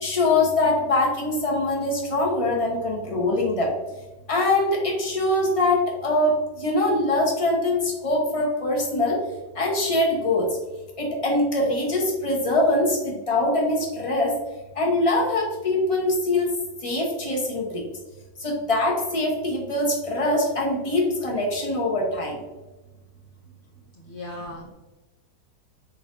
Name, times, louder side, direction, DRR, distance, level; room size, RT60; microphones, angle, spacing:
voice 1, 0.0-3.7 4.3-6.3 6.6-9.2 9.6-10.5 11.0-14.3 14.8-16.5 16.8-17.8 18.4-22.4, left 2 dB, 25° left, -3 dB, 0.8 m, -23 dB
voice 2, 24.0-24.7, left 1 dB, 65° left, -5 dB, 0.5 m, -37 dB
4.5 x 4.0 x 2.5 m, 1.1 s
omnidirectional pair, 1.9 m